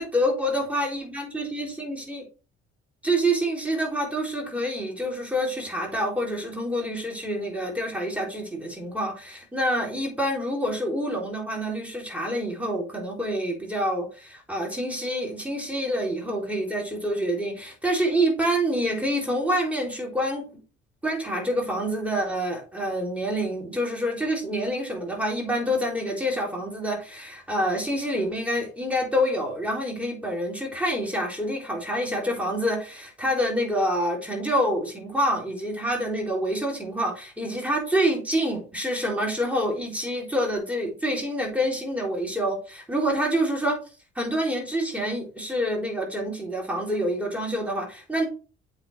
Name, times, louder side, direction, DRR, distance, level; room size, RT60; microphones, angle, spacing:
voice 1, 0.0-2.3 3.0-20.5 21.0-43.8 44.2-48.3, equal, 5° right, -1 dB, 3.8 m, -27 dB
7.9 x 4.1 x 4.3 m, 0.34 s
figure-of-eight pair, 45°, 34 cm